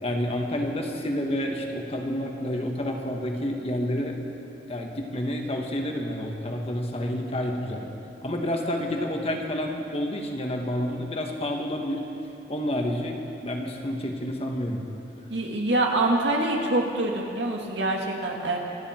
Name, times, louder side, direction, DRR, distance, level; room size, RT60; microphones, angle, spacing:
voice 1, 0.0-4.2 4.7-7.9 8.2-12.1 12.5-14.8, left 1 dB, 35° left, 2 dB, 1.5 m, -29 dB
voice 2, 15.3-18.6, right 2 dB, 90° right, 0 dB, 2.0 m, -25 dB
26.5 x 9.8 x 4.5 m, 3.0 s
head